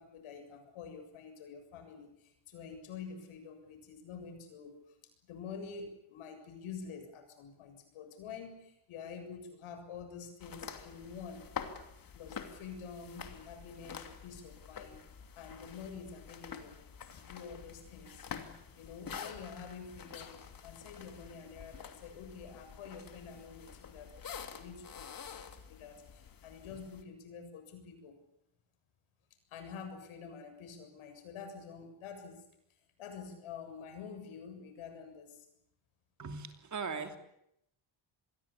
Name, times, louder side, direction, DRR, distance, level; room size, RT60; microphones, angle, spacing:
voice 1, 0.0-5.0 5.3-11.4 12.1-15.0 15.4-18.3 18.7-24.2 24.5-25.0 25.5-28.2 29.5-32.4 33.0-35.5, left 6 dB, 90° left, 7 dB, 7.3 m, -48 dB
sound 1, 10.4-27.0, left 7 dB, 45° left, 2.9 m, -48 dB
voice 2, 36.2-37.2, right 5 dB, 35° right, 7 dB, 3.1 m, -39 dB
27.0 x 22.0 x 8.6 m, 0.78 s
cardioid pair, 130°, 48 cm